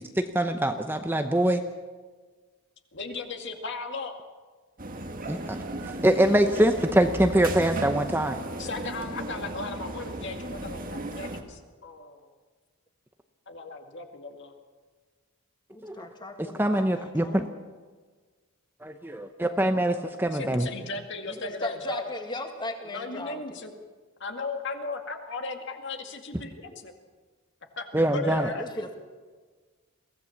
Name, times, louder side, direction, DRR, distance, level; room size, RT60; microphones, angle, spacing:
voice 1, 0.0-1.6 5.3-5.6 5.8-8.4 15.8-16.1 16.4-17.4 18.8-20.7 27.9-28.5, right 1 dB, 10° right, 6 dB, 0.8 m, -24 dB
voice 2, 2.9-4.2 8.6-12.3 13.5-14.5 20.3-22.2 22.8-23.7 24.2-26.9 27.8-28.9, left 3 dB, 55° left, 4 dB, 2.1 m, -36 dB
sound 1, 4.8-11.4, right 1 dB, 40° right, 1.5 m, -35 dB
voice 3, 15.7-17.5 21.3-23.6 28.3-28.9, left 2 dB, 20° left, 5 dB, 2.0 m, -38 dB
23.0 x 16.5 x 7.3 m, 1.4 s
head